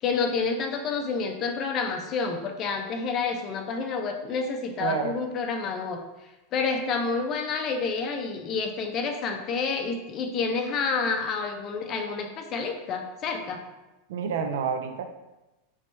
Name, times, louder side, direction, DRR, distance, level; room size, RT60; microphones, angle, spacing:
voice 1, 0.0-6.0 6.5-13.6, left 4 dB, 40° left, 4 dB, 0.5 m, -29 dB
voice 2, 4.8-5.2 14.1-15.0, right 6 dB, 75° right, 7 dB, 0.4 m, -28 dB
3.1 x 2.9 x 3.3 m, 1.0 s
hypercardioid pair, 115°, 0 cm